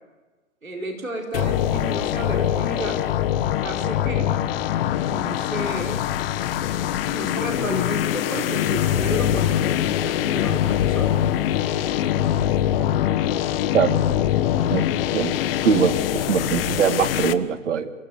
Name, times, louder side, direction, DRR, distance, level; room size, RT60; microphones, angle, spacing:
voice 1, 0.6-3.1 3.6-4.3 5.0-6.0 7.1-11.2, right 1 dB, 90° right, 1 dB, 4.7 m, -32 dB
sound 1, 1.3-17.3, left 11 dB, 45° left, 1.3 m, -23 dB
voice 2, 15.6-17.9, right 7 dB, 60° right, 8 dB, 2.3 m, -22 dB
28.0 x 17.0 x 7.0 m, 1.2 s
figure-of-eight pair, 115°, 39 cm